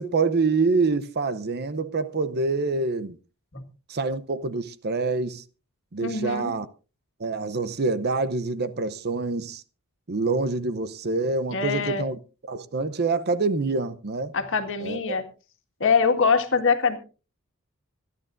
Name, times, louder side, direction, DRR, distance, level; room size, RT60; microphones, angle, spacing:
voice 1, 0.0-3.2 3.9-5.4 5.9-6.7 7.2-9.6 10.1-12.2 12.5-14.3 14.8-15.2, right 3 dB, 45° right, 0.7 m, -26 dB
voice 2, 6.0-6.5 11.5-12.0 14.3-15.2 15.8-17.0, left 5 dB, 60° left, 1.8 m, -23 dB
26.0 x 11.0 x 2.6 m
head